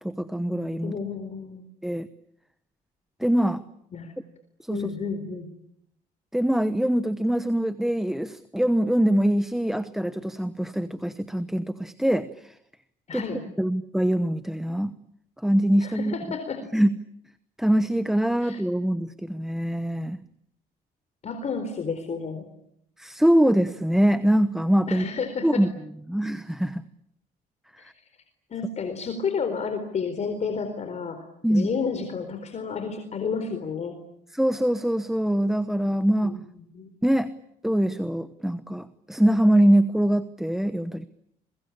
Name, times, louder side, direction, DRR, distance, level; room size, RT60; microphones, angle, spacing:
voice 1, 0.0-0.9 1.8-2.1 3.2-3.6 4.6-4.8 6.3-12.5 13.1-13.2 13.6-15.0 15.4-16.1 16.7-17.0 17.6-20.2 23.0-25.1 25.4-25.7 26.1-26.8 31.4-31.7 34.3-36.4 37.0-37.3 37.6-41.1, right 1 dB, ahead, 12 dB, 1.1 m, -23 dB
voice 2, 0.8-1.7 3.9-4.1 4.7-5.5 13.1-13.4 15.8-16.6 18.4-18.6 21.2-22.5 24.9-25.6 27.8-27.9 28.5-31.2 31.5-34.0 36.2-36.9, left 5 dB, 40° left, 7 dB, 4.2 m, -31 dB
29.5 x 23.0 x 8.7 m, 0.73 s
cardioid pair, 110°, 17 cm